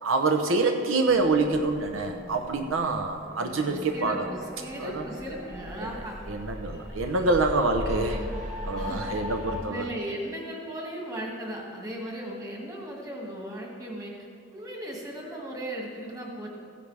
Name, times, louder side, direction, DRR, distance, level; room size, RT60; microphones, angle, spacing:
voice 1, 0.0-4.3 4.8-5.1 5.8-8.3 8.6-9.8, right 3 dB, 80° right, 5 dB, 0.7 m, -26 dB
sound 1, 1.1-9.6, left 1 dB, 40° right, 2.0 m, -38 dB
voice 2, 3.9-6.2 8.8-14.2 14.5-16.5, right 1 dB, 20° right, -1 dB, 1.9 m, -37 dB
15.5 x 10.5 x 3.3 m, 2.4 s
head